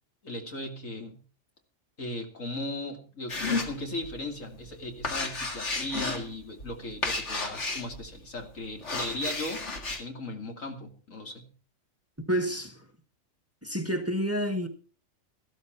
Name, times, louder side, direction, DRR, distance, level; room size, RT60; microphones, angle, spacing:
voice 1, 0.2-1.2 2.0-9.6 10.0-11.5, left 1 dB, 85° left, 3.0 m, -37 dB
sound 1, 3.3-4.2 4.6-8.1 8.7-10.0, left 3 dB, 65° left, 2.3 m, -32 dB
voice 2, 12.3-12.9 13.6-14.7, equal, 10° right, 1.5 m, -29 dB
14.5 x 13.0 x 4.5 m
omnidirectional pair, 1.3 m